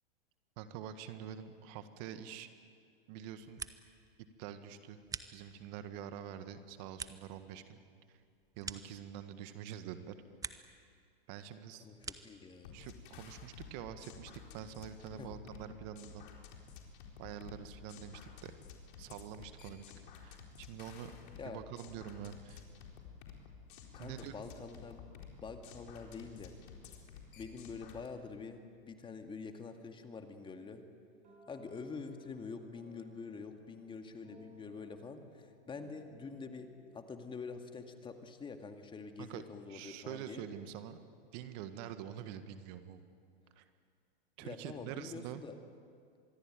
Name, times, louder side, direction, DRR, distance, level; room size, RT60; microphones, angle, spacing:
voice 1, 0.6-2.5 3.1-3.6 4.4-5.0 5.3-7.8 8.1-8.2 8.6-10.2 11.3-11.9 12.7-16.3 17.2-18.5 19.0-19.8 20.2-21.1 21.4-22.6 24.0-24.3 39.2-39.4 39.7-41.0 41.3-43.1 43.6-43.7 44.4-45.4, right 10 dB, 45° right, 10 dB, 1.7 m, -46 dB
sound 1, 3.3-4.1 4.4-5.8 6.3-9.5 9.9-10.8 11.1-12.5, right 5 dB, 10° right, 1.0 m, -48 dB
voice 2, 11.8-12.8 15.2-15.3 21.4-21.6 23.9-25.1 25.4-26.5 27.4-30.8 31.5-40.4 44.4-45.5, left 4 dB, 15° left, 6 dB, 2.2 m, -46 dB
sound 2, 12.6-28.1, left 7 dB, 60° left, 4.3 m, -52 dB
sound 3, 31.2-39.0, right 1 dB, 30° right, 6.8 m, -63 dB
25.5 x 22.0 x 9.2 m, 2.2 s
hypercardioid pair, 110°, 29 cm